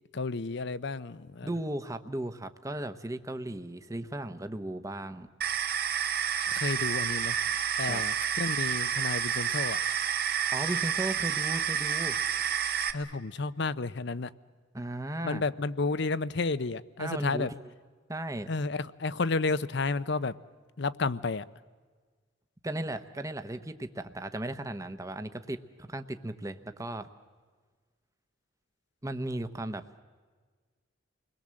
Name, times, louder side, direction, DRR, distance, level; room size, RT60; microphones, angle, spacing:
voice 1, 0.1-1.5 6.5-7.4 7.7-9.8 12.9-14.3 15.2-17.5 18.5-20.3 20.8-21.4, left 3 dB, 60° left, 16 dB, 0.7 m, -31 dB
voice 2, 1.4-5.3 7.8-8.0 10.5-12.2 14.7-15.4 17.0-17.5 18.1-18.5 22.6-27.1 29.0-29.8, right 1 dB, 15° right, 9 dB, 0.9 m, -36 dB
sound 1, 5.4-12.9, right 8 dB, 50° right, 1.3 m, -29 dB
29.0 x 21.0 x 7.6 m, 1.5 s
head